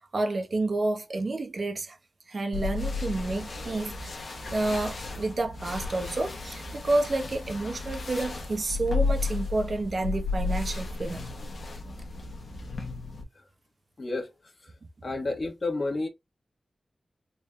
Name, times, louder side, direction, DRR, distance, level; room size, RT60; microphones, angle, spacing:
voice 1, 0.0-2.0 2.3-4.1 4.5-11.3, right 2 dB, 60° right, 1.0 m, -29 dB
sound 1, 2.5-13.2, left 4 dB, 75° left, 1.0 m, -33 dB
voice 2, 14.0-14.3 14.6-14.7 15.0-16.1, left 2 dB, 55° left, 1.3 m, -30 dB
4.0 x 3.4 x 2.3 m
wide cardioid pair, 75°, 0 cm